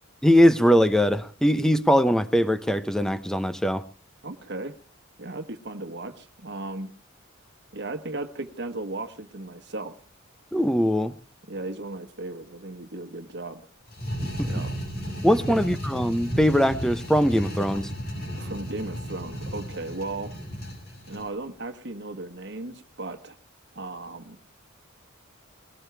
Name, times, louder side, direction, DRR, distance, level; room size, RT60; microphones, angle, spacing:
voice 1, 0.2-3.8 10.5-11.1 14.4-14.5 15.2-17.9, equal, 5° left, 11 dB, 0.8 m, -21 dB
voice 2, 4.2-4.7 5.2-6.9 7.7-9.9 11.5-13.6 14.4-14.7 15.5-15.6 18.4-20.3 21.1-23.4 23.7-24.4, right 2 dB, 55° right, 8 dB, 1.3 m, -36 dB
sound 1, 13.9-21.3, equal, 50° left, 6.5 m, -34 dB
20.0 x 17.5 x 3.4 m, 0.36 s
head